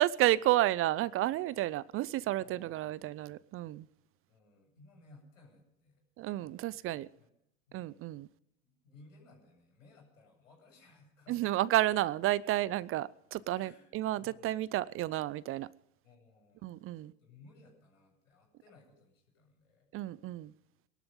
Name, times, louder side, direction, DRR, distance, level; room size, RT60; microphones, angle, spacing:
voice 1, 0.0-3.9 6.2-7.1 7.7-8.3 11.3-15.7 16.6-17.1 19.9-20.5, right 15 dB, 35° right, 0.5 m, -31 dB
voice 2, 2.4-2.8 4.3-6.0 6.3-6.7 7.2-7.3 7.7-8.1 8.6-11.4 13.5-14.5 16.0-19.9, left 3 dB, 80° left, 7.8 m, -61 dB
21.5 x 12.5 x 5.3 m
hypercardioid pair, 90°, 38 cm